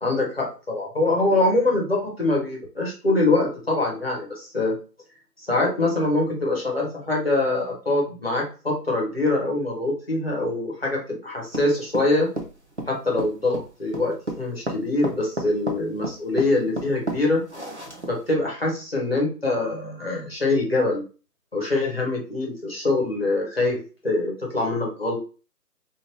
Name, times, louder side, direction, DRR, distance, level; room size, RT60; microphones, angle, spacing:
voice 1, 0.0-4.8 5.4-12.3 12.9-17.4 18.1-21.0 21.5-25.2, left 2 dB, 35° left, -2 dB, 1.0 m, -24 dB
sound 1, 11.5-18.3, right 1 dB, 45° right, 0.5 m, -32 dB
2.5 x 2.3 x 3.1 m, 0.35 s
figure-of-eight pair, 175°, 49 cm